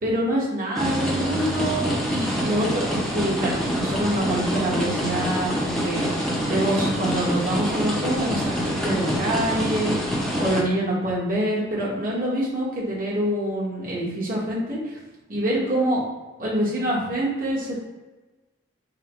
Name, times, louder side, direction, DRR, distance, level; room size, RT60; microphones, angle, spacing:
voice 1, 0.0-10.0 10.4-15.0 15.3-16.0 16.4-17.8, right 1 dB, 45° right, -6 dB, 1.3 m, -26 dB
sound 1, 0.7-10.6, equal, ahead, 0.6 m, -26 dB
5.5 x 2.2 x 3.0 m, 1.2 s
head